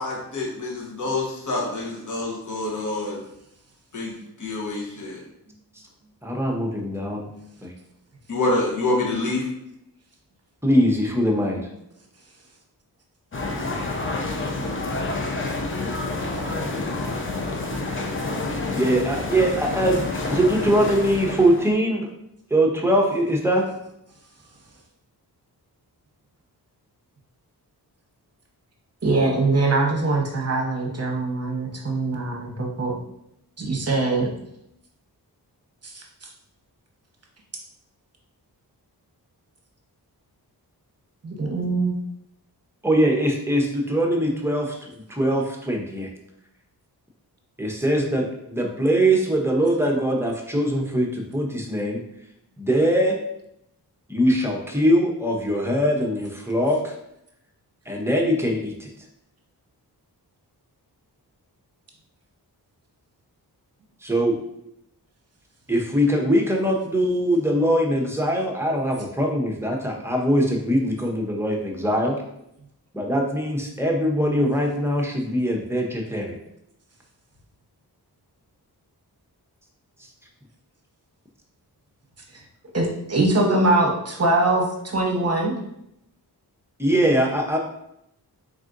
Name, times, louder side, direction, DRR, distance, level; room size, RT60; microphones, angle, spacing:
voice 1, 0.0-3.2 3.9-5.2 8.3-9.5, left 2 dB, 50° left, -4 dB, 1.1 m, -27 dB
voice 2, 6.2-7.3 7.6-7.7 10.6-11.7 18.7-22.1 22.5-23.7 42.8-46.1 47.6-52.0 52.6-53.2 54.1-57.0 57.9-58.9 64.0-64.4 65.7-72.2 72.9-76.4 80.0-80.1 86.8-87.6, equal, 5° right, 0 dB, 0.7 m, -22 dB
sound 1, 13.3-21.7, left 2 dB, 30° left, 0.6 m, -28 dB
voice 3, 29.0-32.9 33.6-34.3 35.9-36.0 41.2-42.0 82.7-84.7 84.9-85.5, right 2 dB, 40° right, 0 dB, 0.9 m, -22 dB
4.0 x 3.7 x 2.5 m, 0.79 s
wide cardioid pair, 95°, 39 cm